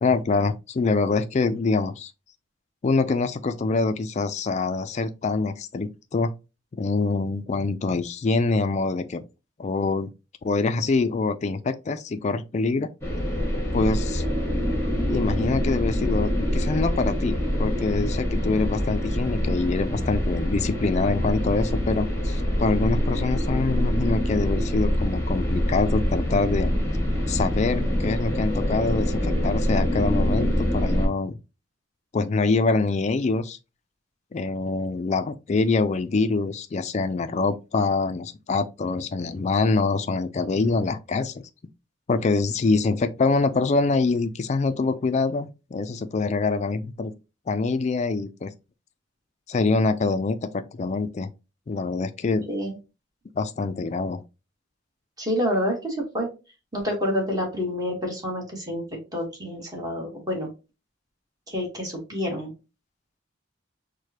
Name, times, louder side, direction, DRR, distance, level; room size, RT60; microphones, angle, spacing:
voice 1, 0.0-2.1 2.8-6.3 6.7-9.2 9.6-10.1 10.4-12.9 13.7-14.2 15.1-26.7 27.3-31.4 32.1-33.6 34.3-41.4 42.1-47.1 47.5-48.5 49.5-51.3 51.7-52.5 53.3-54.2, left 3 dB, 35° left, 0.3 m, -25 dB
sound 1, 13.0-31.1, equal, 15° left, 1.0 m, -25 dB
voice 2, 52.5-52.8 55.2-56.3 56.7-60.5 61.5-62.5, equal, 20° right, 1.3 m, -28 dB
4.7 x 2.1 x 2.8 m
head